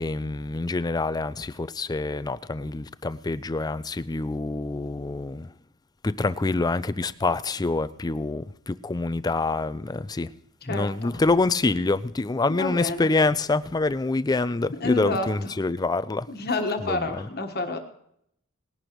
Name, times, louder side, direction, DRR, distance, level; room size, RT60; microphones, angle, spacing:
voice 1, 0.0-5.5 6.0-10.3 10.7-16.3 16.8-17.3, left 3 dB, 20° left, 0.4 m, -26 dB
voice 2, 10.6-11.2 12.6-13.1 14.8-15.5 16.3-17.8, left 3 dB, 45° left, 1.4 m, -29 dB
19.5 x 11.5 x 3.1 m
head